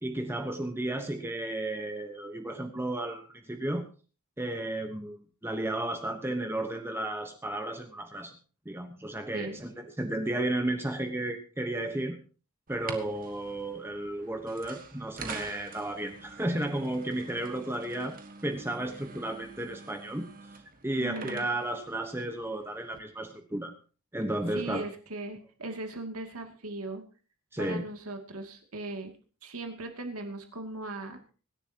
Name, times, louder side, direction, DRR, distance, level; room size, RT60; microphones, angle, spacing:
voice 1, 0.0-3.8 4.4-8.4 8.6-12.2 12.7-18.2 18.4-20.3 20.8-23.7 24.1-24.9 27.5-27.8, right 1 dB, 10° right, 5 dB, 1.2 m, -33 dB
sound 1, 12.7-23.0, right 4 dB, 40° right, 1.7 m, -46 dB
voice 2, 20.9-21.5 24.5-27.0 27.6-29.1 29.4-31.2, right 2 dB, 80° right, 4 dB, 2.5 m, -38 dB
24.5 x 11.0 x 3.0 m, 0.37 s
head